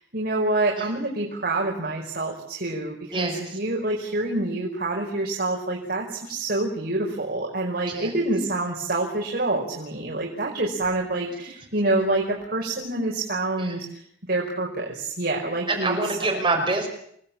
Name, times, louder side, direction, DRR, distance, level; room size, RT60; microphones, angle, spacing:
voice 1, 0.0-14.0 14.3-16.0, right 2 dB, 55° right, -2 dB, 5.0 m, -27 dB
voice 2, 3.1-3.6 7.9-8.2 13.6-13.8 15.7-16.9, right 3 dB, 25° right, 0 dB, 5.8 m, -26 dB
28.5 x 19.0 x 8.8 m, 0.69 s
head